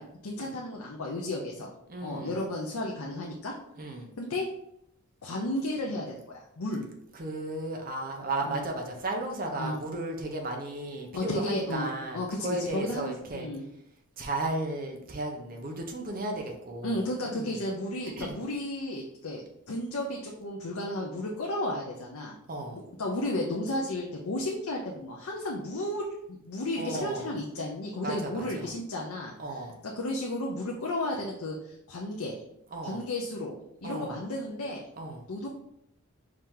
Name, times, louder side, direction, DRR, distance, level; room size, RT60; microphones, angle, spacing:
voice 1, 0.0-1.7 2.0-3.5 4.2-4.5 5.2-6.8 8.4-8.6 9.6-9.7 11.1-11.9 12.1-13.6 16.8-22.3 22.7-29.3 30.0-32.3 32.8-33.6 33.8-34.8 35.3-35.5, left 1 dB, 80° left, -1 dB, 0.7 m, -33 dB
voice 2, 1.9-2.5 3.8-4.1 7.1-13.5 14.2-17.6 18.2-18.4 22.5-22.8 26.8-27.3 28.0-28.7 29.4-29.8 32.7-33.0 33.8-34.2 35.0-35.2, right 2 dB, 40° right, 2 dB, 0.8 m, -35 dB
4.9 x 2.9 x 3.7 m, 0.77 s
head